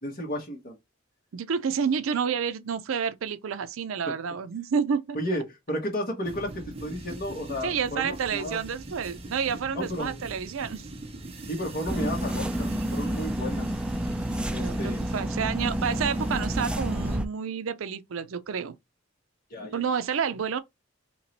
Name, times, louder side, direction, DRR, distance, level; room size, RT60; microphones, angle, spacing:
voice 1, 0.0-0.8 4.0-4.1 5.1-8.6 9.7-10.2 11.4-13.7 14.5-15.0 19.5-19.8, equal, 50° left, 1.2 m, -33 dB
voice 2, 1.3-5.2 7.6-10.8 14.6-18.7 19.7-20.6, right 6 dB, 75° right, 0.5 m, -29 dB
sound 1, 6.2-17.2, right 2 dB, 30° right, 0.8 m, -42 dB
sound 2, 11.9-17.2, right 1 dB, 5° right, 0.3 m, -29 dB
3.0 x 2.9 x 4.0 m
head